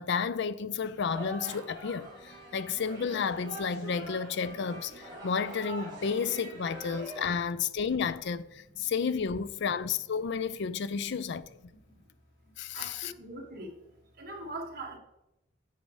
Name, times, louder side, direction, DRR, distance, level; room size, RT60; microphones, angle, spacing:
voice 1, 0.0-11.7 12.6-13.1, left 6 dB, 60° left, 0.4 m, -32 dB
sound 1, 0.9-7.2, right 1 dB, 25° right, 3.4 m, -44 dB
voice 2, 12.4-13.8 14.1-15.0, right 2 dB, 50° right, 1.9 m, -42 dB
10.5 x 7.3 x 3.2 m
head